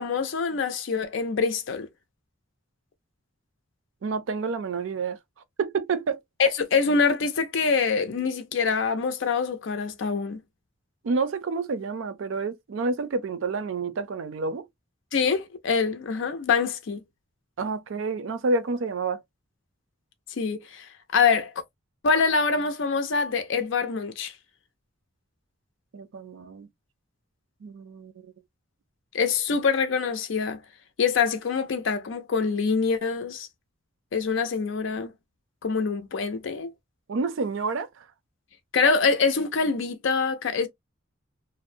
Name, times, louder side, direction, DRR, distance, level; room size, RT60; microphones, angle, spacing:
voice 1, 0.0-1.9 6.4-10.4 15.1-17.0 20.4-20.9 21.1-21.5 22.0-24.3 29.1-30.6 31.0-33.5 34.1-35.1 35.6-36.7 38.7-40.7, left 5 dB, 65° left, 0.5 m, -25 dB
voice 2, 4.0-5.2 5.6-6.2 11.0-14.7 17.6-19.2 25.9-26.7 27.6-28.1 37.1-38.0, right 4 dB, 75° right, 0.4 m, -29 dB
2.5 x 2.0 x 2.5 m
head